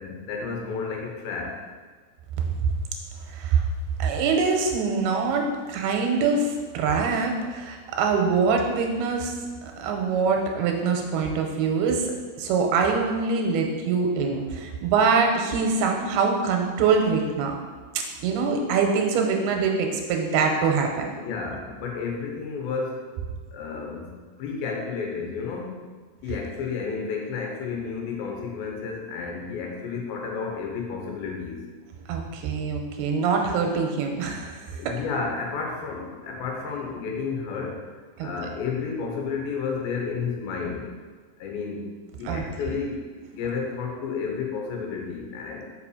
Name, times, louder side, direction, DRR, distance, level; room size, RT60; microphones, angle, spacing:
voice 1, 0.0-1.6 21.2-23.1 23.5-24.1 24.4-25.7 26.2-31.6 34.7-40.9 41.4-41.9 42.2-45.7, left 5 dB, 75° left, 0 dB, 2.8 m, -31 dB
voice 2, 3.3-3.7 4.0-9.3 9.8-17.6 17.9-21.1 32.1-34.9 38.2-38.3 42.3-42.8, right 5 dB, 90° right, 2 dB, 2.8 m, -24 dB
5.8 x 5.6 x 4.8 m, 1.5 s
omnidirectional pair, 4.4 m